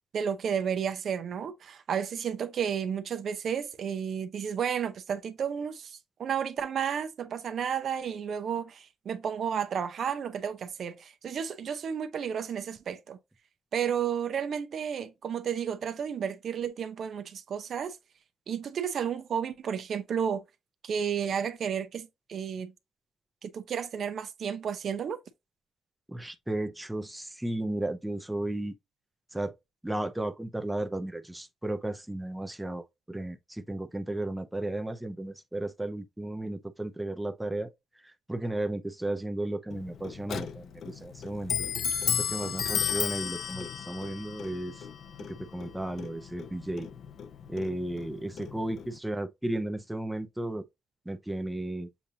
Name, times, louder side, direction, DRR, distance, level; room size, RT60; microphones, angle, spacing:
voice 1, 0.1-13.2 13.7-18.0 18.5-20.4 20.8-22.7 23.4-25.2, right 7 dB, 60° right, 0.7 m, -32 dB
voice 2, 26.1-28.7 29.3-29.6 29.8-37.7 38.0-41.5 42.2-44.9 45.3-46.9 47.5-50.6 51.1-51.9, right 1 dB, 10° right, 0.6 m, -34 dB
Clock, 39.7-49.0, left 8 dB, 65° left, 0.6 m, -34 dB
7.0 x 2.6 x 2.8 m
cardioid pair, 90°, 0 cm